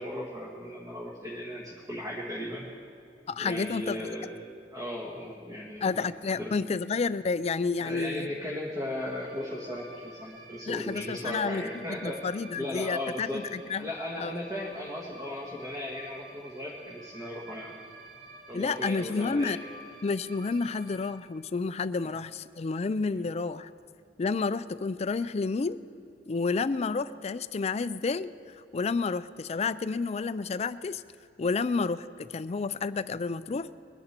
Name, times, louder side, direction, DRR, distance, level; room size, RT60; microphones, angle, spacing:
voice 1, 0.0-2.6 3.4-4.3 4.7-5.9 6.4-6.5 7.8-12.2 12.5-13.4 13.8-17.8 18.5-19.6 22.0-22.1, left 1 dB, 20° right, -3 dB, 1.6 m, -36 dB
voice 2, 3.3-4.0 5.8-8.3 10.7-13.9 14.2-14.3 18.5-19.6 20.0-23.7 24.2-25.8 26.3-28.3 28.7-31.0 31.4-33.8, left 4 dB, 35° left, 15 dB, 0.4 m, -30 dB
sound 1, 9.0-21.1, right 2 dB, 55° right, 1.8 m, -50 dB
22.0 x 10.5 x 4.4 m, 2.5 s
head